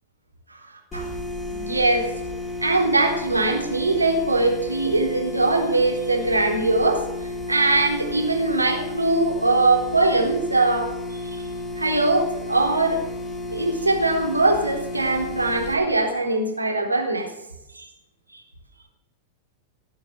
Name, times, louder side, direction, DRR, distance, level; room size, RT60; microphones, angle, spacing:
sound 1, 0.9-15.7, left 2 dB, 20° left, 4.6 m, -32 dB
voice 1, 1.4-2.1 2.6-7.1 7.5-11.4 11.8-13.0 13.5-17.3 17.7-17.9, right 2 dB, 90° right, 2 dB, 3.7 m, -21 dB
19.0 x 9.3 x 7.9 m, 0.88 s
figure-of-eight pair, 95°, 0 cm